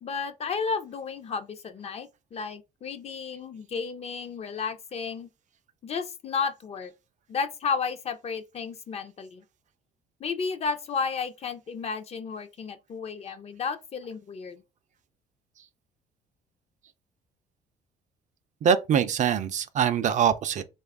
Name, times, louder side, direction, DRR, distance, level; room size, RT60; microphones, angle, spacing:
voice 1, 0.0-5.3 5.8-6.9 7.3-9.4 10.2-14.6, left 5 dB, 40° left, 0.5 m, -33 dB
voice 2, 18.6-20.6, right 8 dB, 45° right, 0.4 m, -23 dB
3.1 x 2.3 x 3.5 m
cardioid pair, 110°, 17 cm